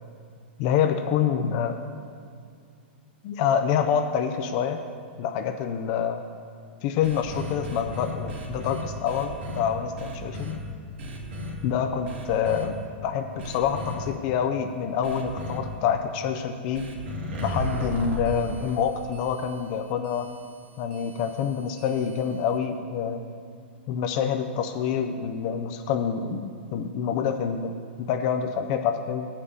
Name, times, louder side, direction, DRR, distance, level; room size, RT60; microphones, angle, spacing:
voice 1, 0.6-1.8 3.2-4.8 5.2-6.2 6.8-10.5 11.6-16.8 17.4-20.3 20.8-23.3 23.9-27.7 28.0-29.3, left 7 dB, 40° left, 7 dB, 0.5 m, -27 dB
sound 1, 7.0-9.6 10.0-10.6 11.0-11.5 12.0-12.7 13.4-14.0 15.0-15.6 16.7-22.6, equal, 60° right, 1.7 m, -36 dB
8.1 x 5.8 x 7.9 m, 2.3 s
hypercardioid pair, 150°, 6 cm